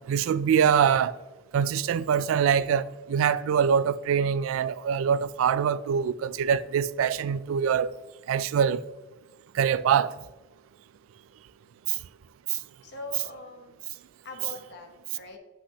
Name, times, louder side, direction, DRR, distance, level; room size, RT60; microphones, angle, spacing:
voice 1, 0.1-1.1 1.5-7.9 8.3-8.8 9.5-10.1 12.5-12.6, right 7 dB, 80° right, 0.3 m, -24 dB
voice 2, 12.8-15.4, left 2 dB, 55° left, 1.1 m, -43 dB
9.8 x 5.6 x 2.9 m
head